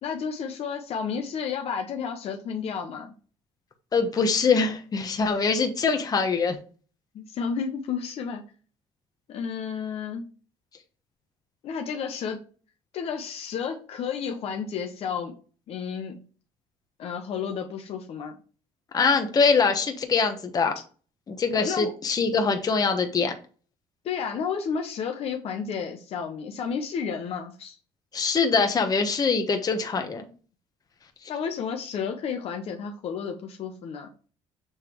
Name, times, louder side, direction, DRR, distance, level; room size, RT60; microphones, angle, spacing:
voice 1, 0.0-3.1 7.1-8.4 9.3-10.3 11.6-12.4 12.9-15.4 15.7-16.2 17.0-18.4 21.6-21.9 24.0-27.8 31.3-34.1, left 6 dB, 55° left, 4 dB, 1.0 m, -31 dB
voice 2, 3.9-6.6 18.9-20.7 21.3-23.3 28.1-30.3, left 5 dB, 35° left, 5 dB, 1.2 m, -23 dB
7.3 x 3.5 x 4.6 m, 0.39 s
cardioid pair, 120°, 12 cm